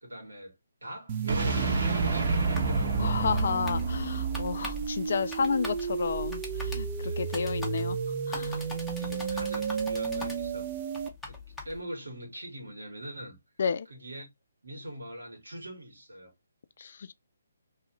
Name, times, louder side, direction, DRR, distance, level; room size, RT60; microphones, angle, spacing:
voice 1, 0.0-0.5 0.8-3.2 7.0-7.2 9.0-10.7 11.3-13.4 13.9-14.3 14.6-16.3, equal, 80° right, 1.5 m, -42 dB
sound 1, 1.1-11.1, right 6 dB, 35° right, 0.4 m, -33 dB
sound 2, 1.3-5.2, right 3 dB, 55° right, 1.2 m, -29 dB
sound 3, 2.3-11.8, left 3 dB, 5° left, 0.8 m, -43 dB
voice 2, 2.9-8.0 8.3-8.7 13.6-13.9 16.8-17.1, left 6 dB, 55° left, 0.3 m, -31 dB
2.8 x 2.5 x 2.9 m
figure-of-eight pair, 145°, 0 cm